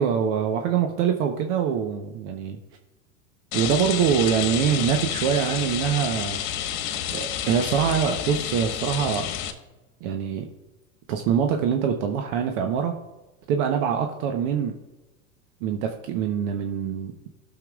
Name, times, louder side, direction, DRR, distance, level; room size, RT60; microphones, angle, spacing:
voice 1, 0.0-2.6 3.5-6.4 7.1-9.3 10.0-10.5 11.1-12.9 13.5-14.7 15.6-17.1, right 8 dB, 60° right, 4 dB, 1.0 m, -24 dB
Rain, 3.5-9.5, left 10 dB, 55° left, 1.4 m, -30 dB
19.0 x 6.9 x 2.4 m, 1.1 s
hypercardioid pair, 100°, 43 cm